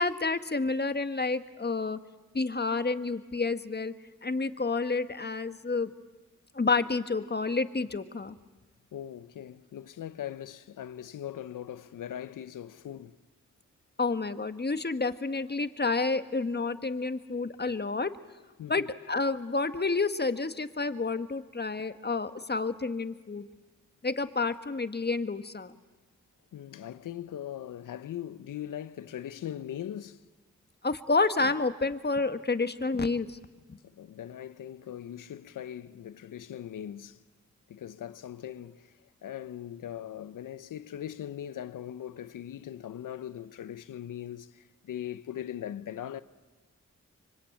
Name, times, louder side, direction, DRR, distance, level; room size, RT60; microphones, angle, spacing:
voice 1, 0.0-2.0 2.3-3.9 4.2-5.9 6.5-8.3 14.0-18.1 18.7-23.5 24.0-25.7 30.8-33.4 33.7-33.8, left 3 dB, 30° left, 1.5 m, -29 dB
voice 2, 8.9-13.2 18.6-18.9 26.5-30.3 33.8-37.2 37.7-46.2, left 10 dB, 85° left, 0.8 m, -40 dB
24.5 x 24.0 x 8.9 m
cardioid pair, 45°, 31 cm